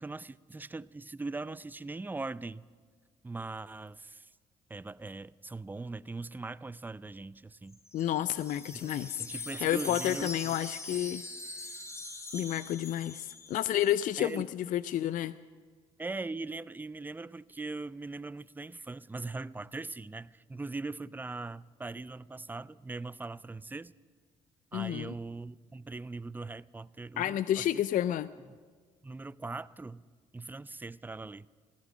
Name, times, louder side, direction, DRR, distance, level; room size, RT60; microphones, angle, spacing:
voice 1, 0.0-2.6 3.2-4.3 4.7-7.8 9.2-10.6 14.2-14.5 16.0-23.9 24.7-27.8 29.0-30.0 30.3-31.5, right 3 dB, 10° right, 0.4 m, -40 dB
Wind chime, 7.7-13.9, left 3 dB, 20° left, 1.7 m, -43 dB
voice 2, 7.9-9.2 9.6-11.2 12.3-15.3 24.7-25.1 27.2-28.3, left 12 dB, 55° left, 0.4 m, -30 dB
15.5 x 14.5 x 6.3 m
hypercardioid pair, 55°, 16 cm